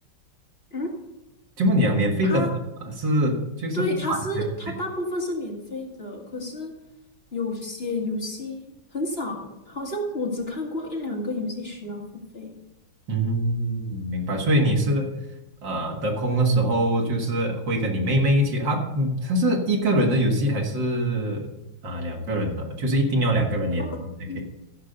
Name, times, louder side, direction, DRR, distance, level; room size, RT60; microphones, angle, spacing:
voice 1, 1.6-2.5 3.0-4.4 13.1-15.1 15.6-21.5 21.8-23.9 24.3-24.4, right 1 dB, 60° right, 1 dB, 2.4 m, -23 dB
voice 2, 3.7-6.7 7.3-8.6 8.9-9.4 9.7-12.0 12.3-12.5 23.8-24.4, left 1 dB, 30° left, -1 dB, 2.0 m, -30 dB
15.0 x 5.4 x 6.6 m, 0.94 s
omnidirectional pair, 2.3 m